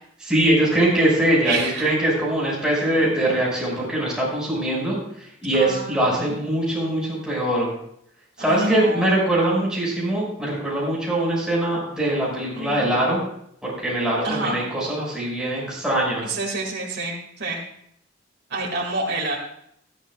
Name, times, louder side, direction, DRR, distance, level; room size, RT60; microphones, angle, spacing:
voice 1, 0.2-7.7 8.4-13.2 13.6-16.3, right 1 dB, 5° right, -5 dB, 5.9 m, -22 dB
voice 2, 1.4-1.9 2.8-2.9 5.5-6.3 8.4-9.3 12.5-12.8 14.2-14.6 16.2-17.6 18.5-19.4, right 2 dB, 60° right, -3 dB, 2.3 m, -28 dB
19.5 x 12.5 x 2.4 m, 0.72 s
head